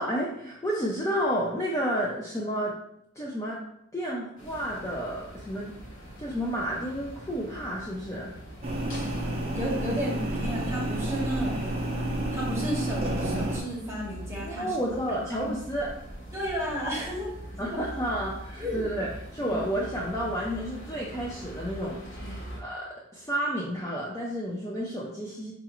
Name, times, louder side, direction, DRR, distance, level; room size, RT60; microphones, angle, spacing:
voice 1, 0.0-2.8 3.2-3.6 3.9-5.8 6.2-8.3 14.4-15.9 17.6-22.8 23.1-25.5, equal, 15° left, -4 dB, 0.4 m, -31 dB
sound 1, 4.4-22.6, equal, 60° left, 1.1 m, -43 dB
sound 2, 8.6-13.6, right 1 dB, 30° right, 0.6 m, -30 dB
voice 2, 9.5-11.6 12.3-14.9 15.4-15.5 16.3-17.3 17.6-17.8 18.6-18.8 19.4-19.6 22.2-22.4, equal, 15° right, -5 dB, 1.0 m, -32 dB
4.9 x 2.4 x 2.9 m, 0.76 s
head